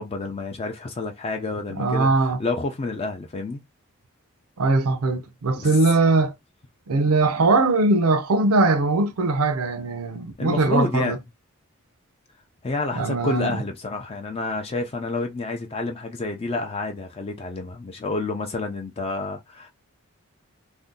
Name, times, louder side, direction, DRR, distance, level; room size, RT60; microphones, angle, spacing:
voice 1, 0.0-3.6 5.6-5.7 10.4-11.2 12.6-19.7, left 3 dB, 25° left, 0.4 m, -29 dB
voice 2, 1.8-2.4 4.6-6.3 6.9-11.2 13.0-13.6, right 3 dB, 90° right, 0.5 m, -21 dB
2.6 x 2.1 x 3.6 m
head